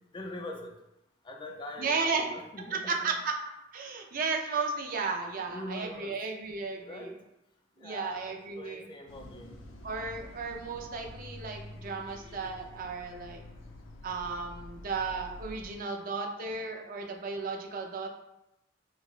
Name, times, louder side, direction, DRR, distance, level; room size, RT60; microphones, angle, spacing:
voice 1, 0.1-0.7 1.3-3.0 5.4-6.1 6.8-7.1 7.8-9.5, left 1 dB, 25° left, 1 dB, 0.4 m, -42 dB
voice 2, 1.8-2.3 2.7-3.3 3.7-7.1 7.8-8.9 9.8-13.4 14.0-18.1, right 4 dB, 45° right, 2 dB, 0.5 m, -34 dB
sound 1, 9.1-15.7, left 1 dB, 80° left, 0.5 m, -48 dB
4.6 x 2.2 x 2.4 m, 0.88 s
head